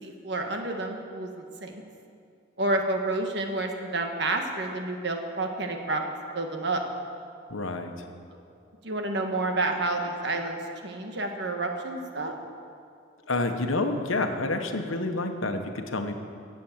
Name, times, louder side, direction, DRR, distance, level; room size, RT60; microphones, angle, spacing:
voice 1, 0.0-1.8 2.6-6.0 6.3-6.8 8.8-12.3, right 2 dB, 55° right, 3 dB, 1.5 m, -29 dB
voice 2, 7.5-8.1 13.3-16.1, left 2 dB, 90° left, 6 dB, 1.2 m, -28 dB
17.0 x 7.7 x 7.3 m, 2.4 s
head